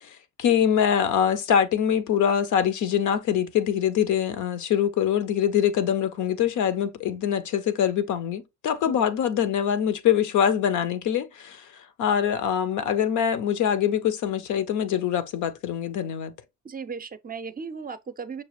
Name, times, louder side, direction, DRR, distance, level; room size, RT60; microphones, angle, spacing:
voice 1, 0.0-11.7 12.0-16.3, left 9 dB, 75° left, 0.7 m, -24 dB
voice 2, 16.6-18.4, right 5 dB, 30° right, 0.5 m, -36 dB
6.2 x 2.3 x 3.1 m
cardioid pair, 90°, 30 cm